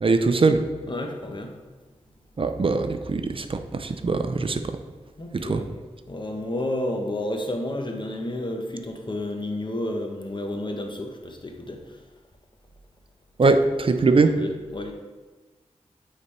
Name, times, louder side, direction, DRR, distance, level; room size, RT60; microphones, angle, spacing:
voice 1, 0.0-0.6 2.4-4.8 5.3-5.6 13.4-14.3, right 3 dB, 50° right, 8 dB, 0.6 m, -21 dB
voice 2, 0.9-1.5 5.2-5.7 6.1-12.0 13.4-13.5 14.2-14.9, left 1 dB, 40° left, 3 dB, 1.0 m, -31 dB
8.5 x 4.0 x 3.3 m, 1.3 s
cardioid pair, 45°, 12 cm